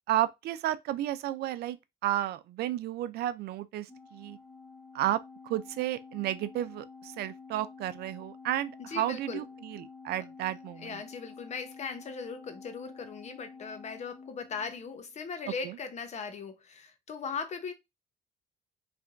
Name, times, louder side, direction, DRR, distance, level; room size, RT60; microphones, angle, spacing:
voice 1, 0.1-1.8 2.0-4.4 4.9-11.0 15.6-15.8, right 13 dB, 70° right, 0.5 m, -32 dB
Organ, 3.9-15.1, left 4 dB, 5° left, 0.9 m, -50 dB
voice 2, 8.8-9.4 10.2-10.3 10.8-17.7, left 5 dB, 40° left, 1.0 m, -39 dB
4.7 x 3.4 x 2.6 m
cardioid pair, 110°, 17 cm